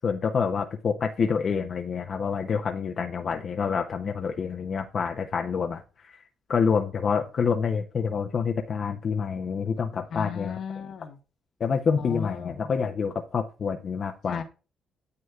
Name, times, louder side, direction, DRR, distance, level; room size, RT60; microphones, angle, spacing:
voice 1, 0.0-6.2 6.5-10.5 11.6-14.4, left 6 dB, 50° left, 4 dB, 0.7 m, -27 dB
voice 2, 10.1-11.2 12.0-12.6 14.2-14.4, left 6 dB, 65° left, 6 dB, 1.2 m, -35 dB
9.6 x 7.5 x 2.4 m, 0.34 s
cardioid pair, 90°, 0 cm